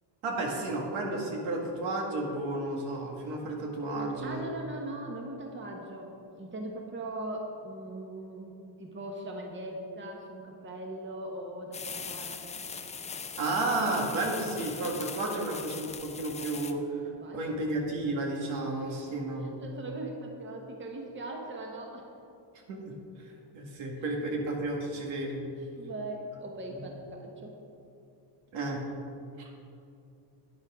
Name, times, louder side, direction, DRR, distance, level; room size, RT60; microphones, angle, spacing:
voice 1, 0.2-4.5 13.4-16.8 17.3-19.5 22.7-22.9 23.5-25.4 26.8-26.9 28.5-28.8, right 2 dB, 85° right, 0 dB, 1.9 m, -32 dB
voice 2, 4.2-12.6 14.6-14.7 17.2-17.4 18.9-19.0 19.4-22.1 25.7-27.6, right 1 dB, 25° right, 1 dB, 1.3 m, -40 dB
sound 1, 11.7-16.7, left 5 dB, 15° left, 0.3 m, -40 dB
11.0 x 9.4 x 3.7 m, 2.6 s
cardioid pair, 130°, 46 cm